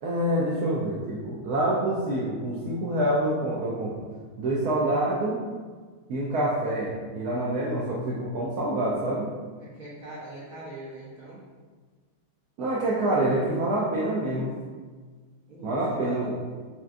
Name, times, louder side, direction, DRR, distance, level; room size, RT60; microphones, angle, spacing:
voice 1, 0.0-3.9 4.4-5.4 6.1-9.3 12.6-14.6 15.6-16.3, right 1 dB, 80° right, -5 dB, 0.8 m, -26 dB
voice 2, 9.6-11.4 15.5-16.3, right 1 dB, 50° right, -10 dB, 1.3 m, -41 dB
5.6 x 2.4 x 2.5 m, 1.5 s
omnidirectional pair, 2.3 m